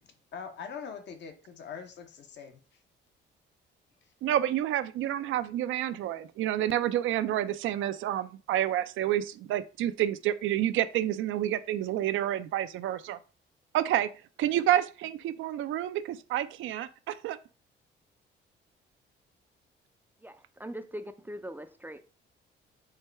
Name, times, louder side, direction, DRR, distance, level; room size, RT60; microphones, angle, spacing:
voice 1, 0.0-2.6, left 6 dB, 60° left, 0.9 m, -43 dB
voice 2, 4.2-13.2 13.7-14.1 14.4-17.4, right 12 dB, 80° right, 0.4 m, -29 dB
voice 3, 20.2-22.0, equal, 10° right, 0.4 m, -41 dB
4.5 x 2.2 x 4.6 m
cardioid pair, 90°, 20 cm